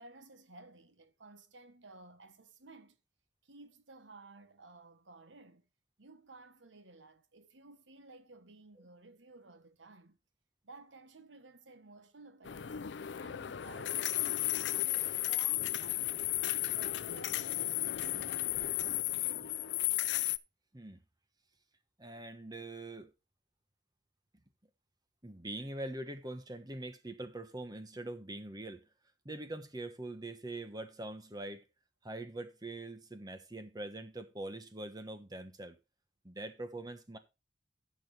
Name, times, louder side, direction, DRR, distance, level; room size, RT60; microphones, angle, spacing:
voice 1, 0.0-3.0 3.4-5.7 6.0-10.2 10.6-12.8 13.2-16.4 16.8-19.1, right 2 dB, 90° right, 1.3 m, -56 dB
sound 1, 12.4-20.4, left 15 dB, 70° left, 0.5 m, -34 dB
voice 2, 22.0-23.1 25.2-28.9 29.2-31.7 32.0-35.8 36.2-37.2, right 2 dB, 20° right, 1.2 m, -43 dB
15.0 x 6.3 x 3.3 m
head